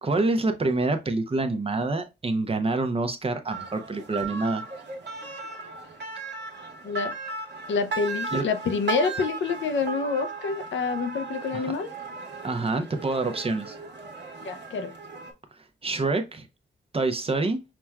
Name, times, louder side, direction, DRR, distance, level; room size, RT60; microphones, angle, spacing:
voice 1, 0.0-4.6 8.3-8.4 11.5-11.7 12.4-13.7 15.8-16.5 16.9-17.6, right 3 dB, 30° right, 0.6 m, -26 dB
sound 1, 3.5-15.3, right 3 dB, 65° right, 1.1 m, -37 dB
voice 2, 6.8-7.2 7.7-11.9 14.4-14.9, left 4 dB, 75° left, 0.5 m, -27 dB
5.8 x 2.3 x 2.3 m
wide cardioid pair, 100°, 19 cm